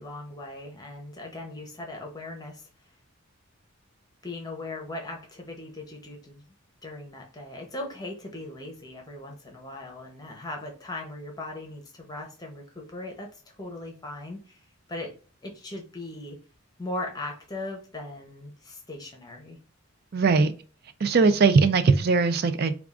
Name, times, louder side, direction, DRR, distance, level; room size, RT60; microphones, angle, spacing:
voice 1, 0.0-2.7 4.2-6.4 6.8-14.6 14.9-15.1 15.4-16.4 16.8-19.6, left 2 dB, 20° left, 0.8 m, -38 dB
voice 2, 20.1-20.5 21.0-22.8, right 4 dB, 45° right, 0.4 m, -20 dB
3.5 x 2.4 x 3.6 m
head